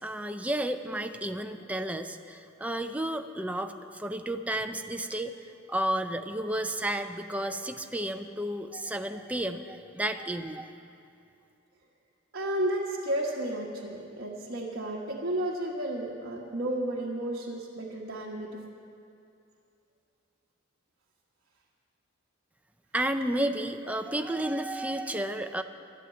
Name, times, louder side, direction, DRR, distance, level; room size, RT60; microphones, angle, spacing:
voice 1, 0.0-5.3 5.7-10.7 22.9-25.6, right 1 dB, 5° right, 6 dB, 0.5 m, -32 dB
voice 2, 12.3-18.6, right 1 dB, 55° right, -5 dB, 1.4 m, -32 dB
12.0 x 11.5 x 8.9 m, 2.6 s
head